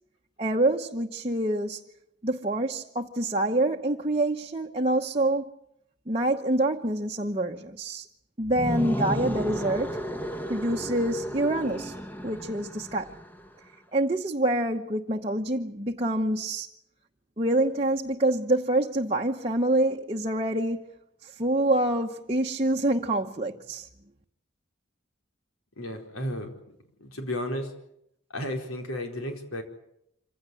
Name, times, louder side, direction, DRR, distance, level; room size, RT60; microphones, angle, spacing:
voice 1, 0.4-1.8 2.2-5.5 6.1-8.0 8.4-10.0 10.5-11.9 12.2-13.1 13.9-16.7 17.4-20.9 21.2-23.9, right 1 dB, 25° right, 1.0 m, -26 dB
sound 1, 8.4-13.5, equal, 10° left, 1.1 m, -33 dB
voice 2, 25.8-26.8 27.0-27.7 28.3-29.6, left 1 dB, 90° left, 4.4 m, -33 dB
26.0 x 16.5 x 9.8 m
head